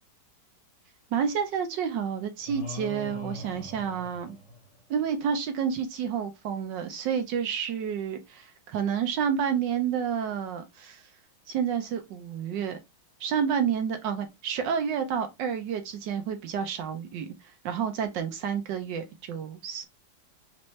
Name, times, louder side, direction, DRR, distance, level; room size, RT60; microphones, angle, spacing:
voice 1, 1.1-4.4 4.9-11.0 11.5-12.8 13.2-17.3 17.6-19.9, right 7 dB, 70° right, 1.3 m, -29 dB
sound 1, 2.5-5.0, left 2 dB, 25° left, 0.8 m, -41 dB
4.4 x 2.7 x 3.0 m
omnidirectional pair, 2.2 m